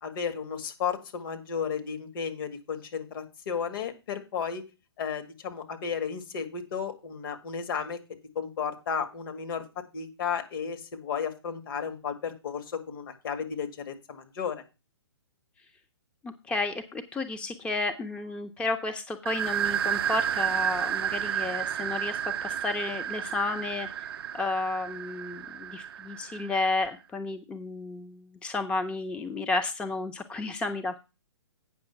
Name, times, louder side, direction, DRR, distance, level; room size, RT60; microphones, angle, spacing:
voice 1, 0.0-4.6 5.0-8.0 8.4-14.6, left 7 dB, 50° left, 6 dB, 2.1 m, -33 dB
voice 2, 16.2-24.1 24.3-31.0, left 3 dB, 5° left, 7 dB, 0.5 m, -32 dB
sound 1, 19.3-26.7, right 9 dB, 60° right, 0.4 m, -31 dB
8.9 x 6.3 x 5.8 m, 0.28 s
hypercardioid pair, 135°, 14 cm